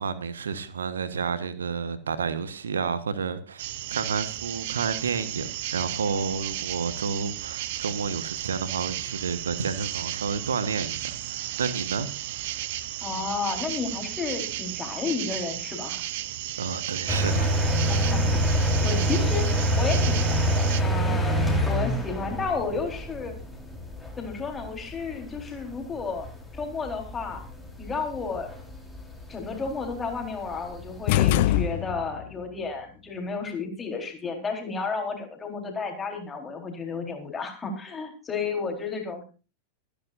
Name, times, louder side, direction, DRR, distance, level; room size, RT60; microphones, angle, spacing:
voice 1, 0.0-3.6 3.9-12.1 12.5-12.6 16.6-17.9, right 5 dB, 70° right, 1.3 m, -30 dB
sound 1, 3.6-20.8, right 14 dB, 50° right, 1.1 m, -34 dB
voice 2, 13.0-16.1 17.9-19.4 19.8-23.4 24.2-26.3 26.5-27.4 27.8-28.5 29.3-39.2, left 4 dB, 15° left, 4.2 m, -32 dB
sound 2, 17.1-31.1, right 1 dB, ahead, 4.3 m, -27 dB
sound 3, 31.1-32.3, left 12 dB, 50° left, 0.7 m, -23 dB
24.5 x 10.5 x 2.6 m
figure-of-eight pair, 90°, 0 cm